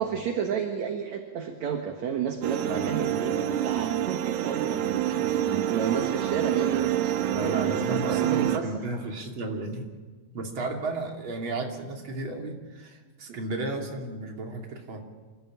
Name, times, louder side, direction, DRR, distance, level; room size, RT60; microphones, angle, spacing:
voice 1, 0.0-8.8 13.3-13.4, right 7 dB, 60° right, 4 dB, 2.3 m, -31 dB
sound 1, 2.4-8.6, right 11 dB, 80° right, 2.9 m, -27 dB
voice 2, 2.7-3.1 5.1-5.4 5.8-6.0 7.3-9.8 10.3-15.0, right 2 dB, 35° right, 1 dB, 3.1 m, -34 dB
26.5 x 15.0 x 8.7 m, 1.4 s
omnidirectional pair, 4.4 m